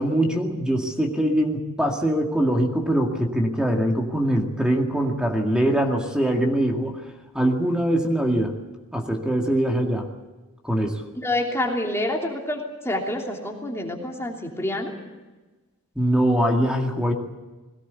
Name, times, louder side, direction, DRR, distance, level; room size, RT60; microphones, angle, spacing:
voice 1, 0.0-7.0 7.3-8.6 8.9-10.1 10.6-11.0 16.0-17.1, right 1 dB, 5° right, 1 dB, 2.1 m, -22 dB
voice 2, 11.1-14.9, left 1 dB, 10° left, 0 dB, 3.1 m, -27 dB
21.5 x 18.0 x 8.4 m, 1.2 s
head